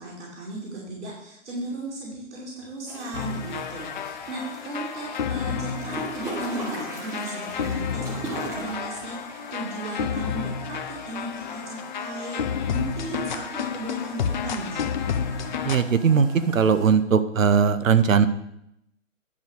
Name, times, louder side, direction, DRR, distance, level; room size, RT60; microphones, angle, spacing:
voice 1, 0.0-12.4 12.7-14.9, right 2 dB, 60° right, -4 dB, 2.7 m, -36 dB
sound 1, 2.9-16.9, right 1 dB, 5° right, 1.3 m, -40 dB
sound 2, 3.1-15.8, left 7 dB, 35° left, 0.6 m, -31 dB
voice 2, 15.6-18.3, right 6 dB, 80° right, 12 dB, 0.9 m, -19 dB
10.0 x 4.2 x 6.5 m, 0.80 s
figure-of-eight pair, 135°, 39 cm